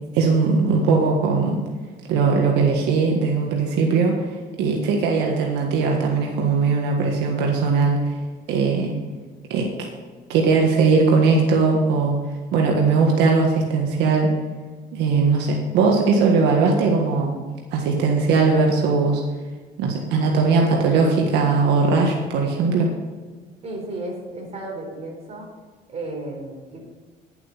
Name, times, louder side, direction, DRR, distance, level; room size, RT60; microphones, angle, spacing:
voice 1, 0.1-1.6 2.1-4.3 4.6-8.2 8.5-8.9 9.5-9.7 10.3-12.2 12.5-14.3 14.9-17.4 17.7-19.2 19.8-22.9, right 4 dB, 90° right, 1 dB, 1.6 m, -19 dB
voice 2, 23.6-25.5 25.9-26.8, right 2 dB, 40° right, 0 dB, 4.2 m, -33 dB
11.0 x 8.0 x 5.7 m, 1.4 s
cardioid pair, 110°, 17 cm